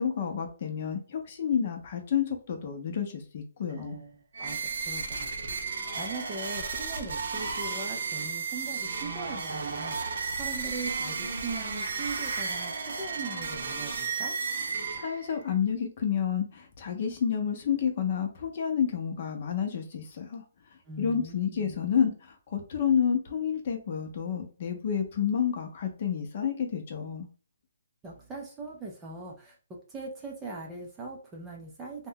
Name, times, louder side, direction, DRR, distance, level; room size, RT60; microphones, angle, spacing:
voice 1, 0.0-4.0 14.9-20.4 21.0-27.3, left 8 dB, 40° left, 4 dB, 0.7 m, -29 dB
voice 2, 3.8-14.4 20.8-21.8 28.0-29.6 29.9-32.1, right 3 dB, 10° right, -1 dB, 0.5 m, -41 dB
sound 1, 4.3-15.4, right 4 dB, 60° right, 0.7 m, -33 dB
2.5 x 2.2 x 3.6 m, 0.39 s
hypercardioid pair, 165°, 0 cm